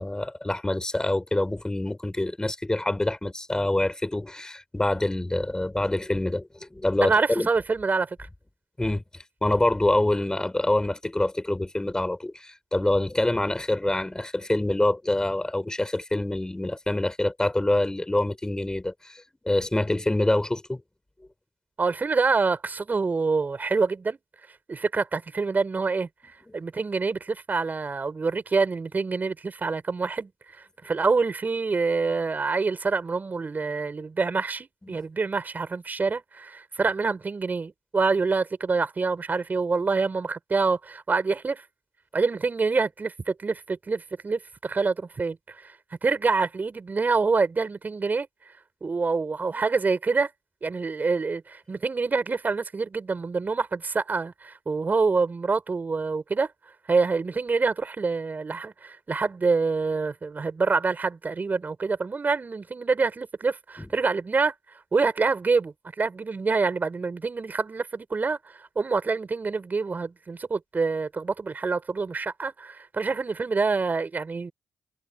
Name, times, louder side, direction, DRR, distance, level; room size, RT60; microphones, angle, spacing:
voice 1, 0.0-7.5 8.8-9.0 9.4-20.8 26.5-26.6 34.8-35.0 63.8-63.9, left 1 dB, 15° left, 3.9 m, -26 dB
voice 2, 7.0-8.2 21.8-24.2 24.7-26.1 26.5-30.3 30.8-41.6 42.1-45.7 46.0-48.3 48.8-50.3 50.6-56.5 56.9-64.5 64.9-74.5, right 4 dB, 40° right, 5.7 m, -26 dB
supercardioid pair, 50°, 5 cm